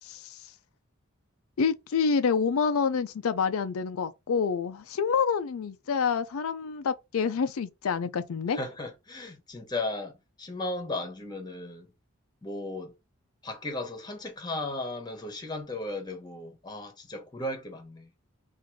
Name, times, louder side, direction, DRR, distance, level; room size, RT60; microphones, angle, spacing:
voice 1, 1.6-8.6, left 6 dB, 85° left, 0.4 m, -27 dB
voice 2, 8.5-11.9 12.4-12.9 13.4-18.1, left 2 dB, 20° left, 1.0 m, -36 dB
3.7 x 2.6 x 4.6 m
head